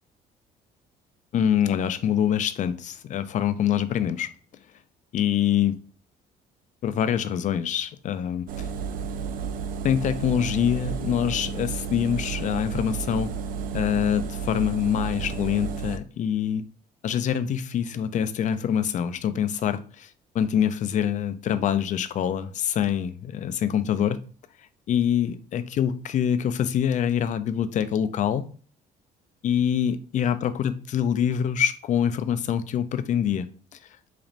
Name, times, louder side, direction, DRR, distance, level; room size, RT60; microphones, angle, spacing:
voice 1, 1.3-4.3 5.1-5.8 6.8-8.7 9.8-13.3 13.7-16.6 17.0-20.1 20.3-24.2 24.9-28.5 29.4-33.5, left 9 dB, 45° left, 12 dB, 0.4 m, -25 dB
Engine, 8.5-16.0, right 6 dB, 55° right, 0.4 m, -32 dB
4.0 x 3.0 x 2.5 m, 0.40 s
cardioid pair, 110°, 17 cm